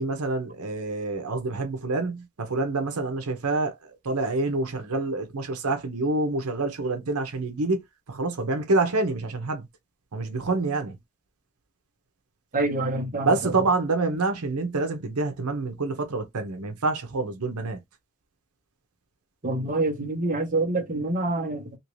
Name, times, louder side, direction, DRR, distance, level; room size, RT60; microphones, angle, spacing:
voice 1, 0.0-9.7 10.1-11.0 13.2-17.8, right 3 dB, 80° right, 0.8 m, -27 dB
voice 2, 12.5-13.3 19.4-21.8, right 2 dB, 40° right, 1.0 m, -26 dB
3.0 x 2.6 x 3.1 m
head